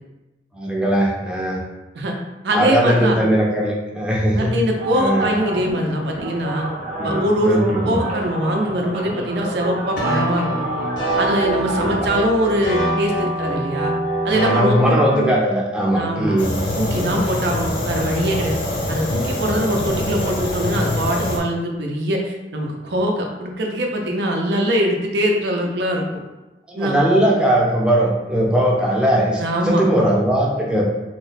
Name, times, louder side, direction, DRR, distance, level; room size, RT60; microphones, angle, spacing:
voice 1, 0.5-1.6 2.5-4.5 4.9-5.3 7.0-8.0 11.8-12.1 14.4-16.5 26.7-30.8, right 1 dB, 5° right, -3 dB, 0.5 m, -19 dB
voice 2, 2.4-3.2 4.4-6.6 7.0-10.7 11.2-13.9 14.2-15.0 15.9-16.4 16.8-18.5 18.9-26.0 26.8-27.0 29.4-29.9, equal, 70° right, 1 dB, 0.5 m, -22 dB
sound 1, 4.7-12.1, right 1 dB, 40° right, 0.8 m, -29 dB
sound 2, 10.0-15.3, right 1 dB, 80° left, 1.3 m, -24 dB
Fire, 16.4-21.4, left 1 dB, 50° left, 0.6 m, -24 dB
2.9 x 2.1 x 4.0 m, 1.1 s
head